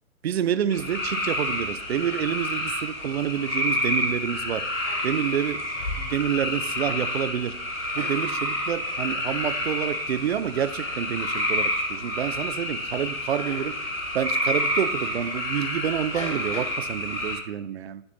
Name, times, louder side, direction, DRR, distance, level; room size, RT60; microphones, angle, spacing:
voice 1, 0.2-4.7 5.0-5.6 6.0-7.6 7.9-13.8 14.1-18.0, right 9 dB, 50° right, 12 dB, 0.6 m, -28 dB
sound 1, 0.7-17.4, left 1 dB, 65° left, 3.2 m, -29 dB
12.5 x 4.4 x 4.2 m, 0.73 s
figure-of-eight pair, 120°, 42 cm